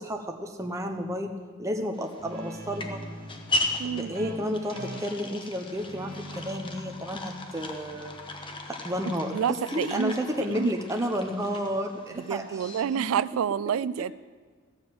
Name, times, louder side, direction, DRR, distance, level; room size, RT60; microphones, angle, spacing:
voice 1, 0.0-1.3 1.6-3.0 3.9-8.2 8.7-13.0, equal, 15° right, 3 dB, 0.8 m, -31 dB
sound 1, 1.9-13.2, left 2 dB, 25° left, 1.0 m, -37 dB
Guitar, 2.2-9.4, right 1 dB, 55° right, 2.5 m, -43 dB
voice 2, 3.8-4.3 9.3-10.1 10.5-10.7 12.2-14.1, right 8 dB, 85° right, 18 dB, 0.3 m, -29 dB
14.5 x 6.9 x 7.7 m, 1.5 s
head